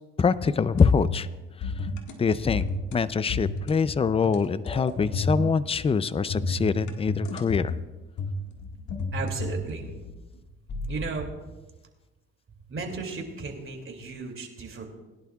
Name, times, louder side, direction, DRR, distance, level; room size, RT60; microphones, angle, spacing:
voice 1, 0.2-1.3 1.6-1.7 2.2-2.6 2.9-7.7, left 5 dB, 20° left, 15 dB, 0.4 m, -24 dB
sound 1, 0.7-1.3 1.6-2.1 2.5-3.0 3.3-3.8 4.1-5.6 6.3-7.9 8.2-10.3 10.7-11.0, left 2 dB, 70° left, 1.8 m, -32 dB
voice 2, 9.1-9.9 10.9-11.3 12.7-14.8, right 4 dB, 45° right, 2 dB, 2.6 m, -35 dB
20.5 x 11.0 x 2.4 m, 1.2 s
cardioid pair, 90°, 30 cm